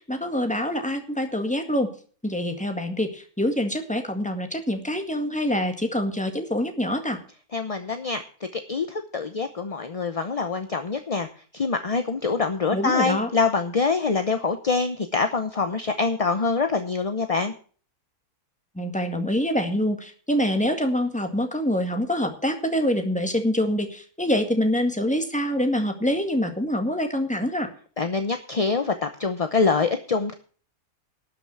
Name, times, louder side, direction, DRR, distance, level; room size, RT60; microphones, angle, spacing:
voice 1, 0.1-1.9 2.2-7.2 12.7-13.3 18.8-27.7, equal, 5° left, 5 dB, 1.7 m, -25 dB
voice 2, 7.5-8.2 8.5-11.3 11.5-17.5 28.0-30.3, left 4 dB, 30° left, 8 dB, 0.7 m, -25 dB
12.5 x 6.1 x 8.6 m, 0.42 s
omnidirectional pair, 1.6 m